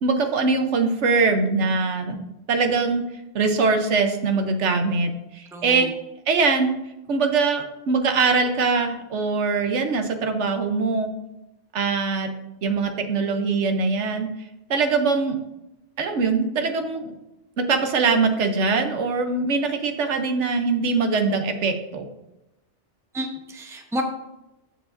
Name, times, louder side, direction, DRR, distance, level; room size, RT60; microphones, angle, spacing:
voice 1, 0.0-2.2 2.5-3.0 3.3-5.9 6.3-6.7 7.1-11.1 11.7-12.3 12.6-14.3 14.7-15.4 16.0-17.1 17.6-22.1, right 4 dB, 80° right, 6 dB, 1.2 m, -22 dB
voice 2, 5.5-5.9 23.1-24.0, equal, 5° right, 3 dB, 0.7 m, -30 dB
14.0 x 4.8 x 2.6 m, 0.90 s
omnidirectional pair, 1.2 m